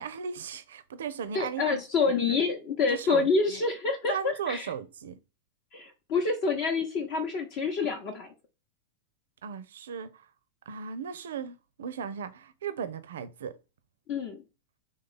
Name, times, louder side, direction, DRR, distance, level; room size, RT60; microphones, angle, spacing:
voice 1, 0.0-2.4 2.9-3.6 4.1-5.2 9.4-10.3 10.7-13.6, right 7 dB, 60° right, 0.5 m, -37 dB
voice 2, 1.3-4.7 5.7-8.3 14.1-14.4, left 4 dB, 45° left, 0.7 m, -27 dB
3.9 x 3.2 x 3.8 m
figure-of-eight pair, 90°, 0 cm